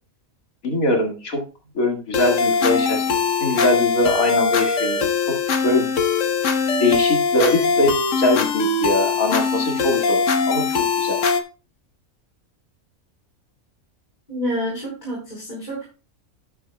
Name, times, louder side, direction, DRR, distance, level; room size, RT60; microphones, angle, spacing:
voice 1, 0.6-1.4 1.7-5.1 5.6-5.9 6.8-11.2, left 2 dB, 80° left, 1 dB, 2.5 m, -22 dB
sound 1, 2.1-11.4, left 5 dB, 65° left, 1.4 m, -21 dB
voice 2, 14.3-15.8, equal, 30° left, -5 dB, 4.5 m, -28 dB
12.5 x 9.1 x 2.3 m, 0.33 s
omnidirectional pair, 1.4 m